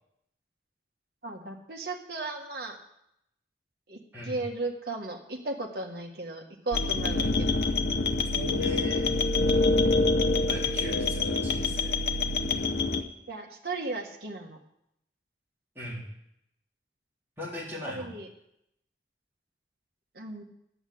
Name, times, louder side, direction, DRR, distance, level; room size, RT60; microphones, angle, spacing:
voice 1, 1.2-2.8 3.9-7.8 13.3-14.6 17.8-18.3 20.1-20.4, right 3 dB, 60° right, 3 dB, 1.7 m, -36 dB
sound 1, 6.7-13.0, left 3 dB, 65° left, 0.9 m, -26 dB
voice 2, 8.3-9.1 10.3-12.0 15.7-16.0 17.4-18.2, left 2 dB, 15° right, -6 dB, 4.0 m, -38 dB
11.0 x 8.2 x 7.9 m, 0.79 s
head